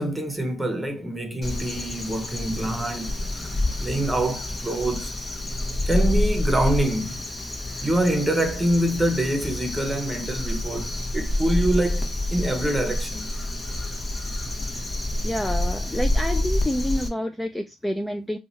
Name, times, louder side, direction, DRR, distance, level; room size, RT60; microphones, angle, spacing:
voice 1, 0.0-3.5 3.8-5.2 5.9-7.2 7.8-13.3, right 1 dB, 15° right, 1.0 m, -25 dB
Crow, 1.4-17.1, left 1 dB, 30° left, 0.9 m, -28 dB
voice 2, 15.2-18.4, equal, 10° left, 0.4 m, -28 dB
2.8 x 2.3 x 4.0 m
supercardioid pair, 75°, 0 cm